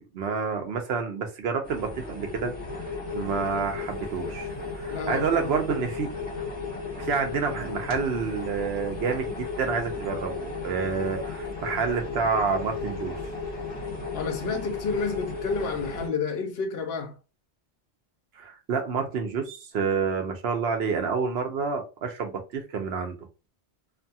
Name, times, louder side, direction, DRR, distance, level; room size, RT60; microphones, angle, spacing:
voice 1, 0.0-2.9 3.1-6.1 7.0-13.2 18.4-23.2, right 5 dB, 75° right, 0.9 m, -29 dB
sound 1, 1.6-16.1, left 4 dB, 40° left, 1.0 m, -35 dB
voice 2, 4.9-5.5 14.1-17.2, left 4 dB, 70° left, 0.9 m, -30 dB
2.6 x 2.3 x 2.7 m
omnidirectional pair, 1.1 m